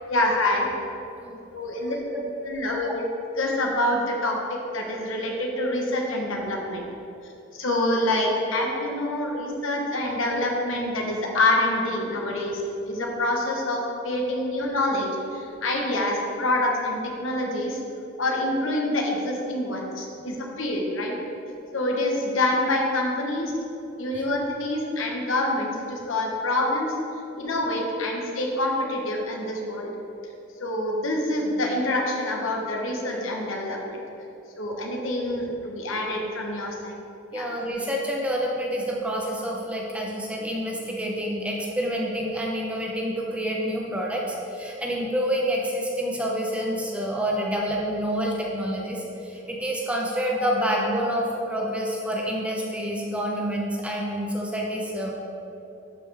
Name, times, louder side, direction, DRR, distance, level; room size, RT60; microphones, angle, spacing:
voice 1, 0.1-0.7 1.5-2.0 2.5-3.0 3.4-6.8 7.5-17.8 18.2-21.1 21.7-23.5 24.0-26.9 27.4-29.9 30.6-34.0 34.6-36.9 37.3-37.5, left 1 dB, 75° left, 0 dB, 1.3 m, -26 dB
voice 2, 1.8-2.2 2.9-3.0 37.3-55.1, equal, 5° right, -3 dB, 0.8 m, -28 dB
12.0 x 5.2 x 3.5 m, 3.0 s
head